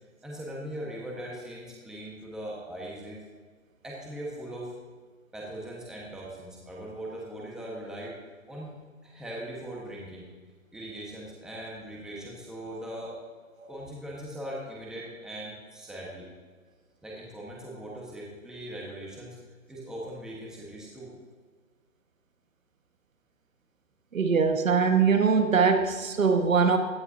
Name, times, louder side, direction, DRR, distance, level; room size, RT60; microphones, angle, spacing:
voice 1, 0.2-3.2 3.8-4.7 5.3-8.2 8.5-8.7 9.0-10.2 10.7-13.2 13.7-16.3 17.0-19.4 19.7-21.1, right 1 dB, ahead, -4 dB, 1.4 m, -40 dB
voice 2, 24.1-26.8, right 5 dB, 70° right, 6 dB, 1.7 m, -22 dB
17.0 x 11.5 x 2.8 m, 1.5 s
hypercardioid pair, 155°, 41 cm